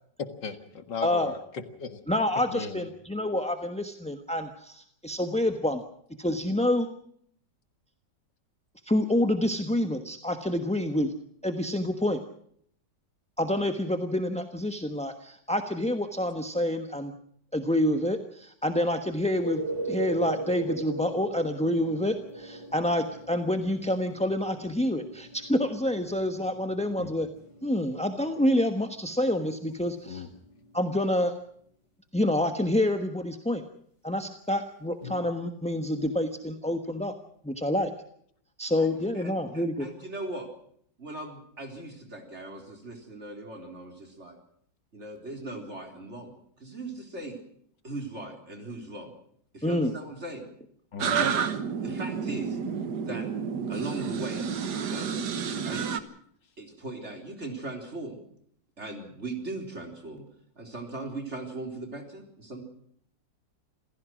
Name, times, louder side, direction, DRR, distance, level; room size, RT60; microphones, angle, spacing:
voice 1, 0.2-2.0 2.5-2.9 27.0-27.1 30.1-30.3 50.9-51.1, left 5 dB, 75° left, 9 dB, 2.3 m, -37 dB
voice 2, 2.1-5.8 6.2-6.9 8.8-11.1 11.4-12.2 13.4-17.1 17.5-27.3 27.6-30.3 30.7-31.3 32.1-33.6 34.0-37.1 37.4-37.9 38.6-39.9 49.6-49.9, left 1 dB, 5° left, 6 dB, 0.9 m, -27 dB
sound 1, 19.2-30.8 35.0-35.1, right 2 dB, 60° left, 8.2 m, -39 dB
voice 3, 38.8-40.5 41.0-44.4 44.9-46.3 46.6-47.4 47.8-49.1 49.5-50.5 51.1-51.5 51.8-52.6 53.0-53.3 53.7-54.5 54.8-55.2 55.6-56.0 56.6-58.2 58.8-60.2 60.6-62.6, right 2 dB, 40° right, 3 dB, 4.2 m, -39 dB
sound 2, 51.0-56.0, right 6 dB, 70° right, 1.8 m, -30 dB
27.0 x 16.0 x 6.2 m, 0.65 s
omnidirectional pair, 1.9 m